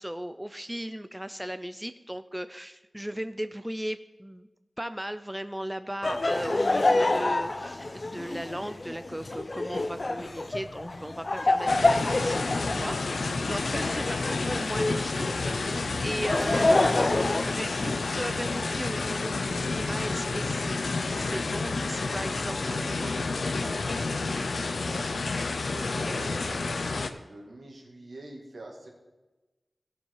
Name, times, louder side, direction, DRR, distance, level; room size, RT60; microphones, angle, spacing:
voice 1, 0.0-4.5 4.8-23.2, equal, 10° right, 11 dB, 0.4 m, -37 dB
Laughter, 6.0-15.1 15.9-18.3, left 2 dB, 50° left, 0.6 m, -27 dB
sound 1, 8.4-21.9, left 1 dB, 70° left, 1.5 m, -49 dB
sound 2, 11.7-27.1, left 3 dB, 90° left, 0.6 m, -30 dB
voice 2, 22.6-28.9, right 2 dB, 75° right, 0 dB, 2.1 m, -44 dB
16.5 x 5.6 x 4.7 m, 1.1 s
wide cardioid pair, 70°, 0 cm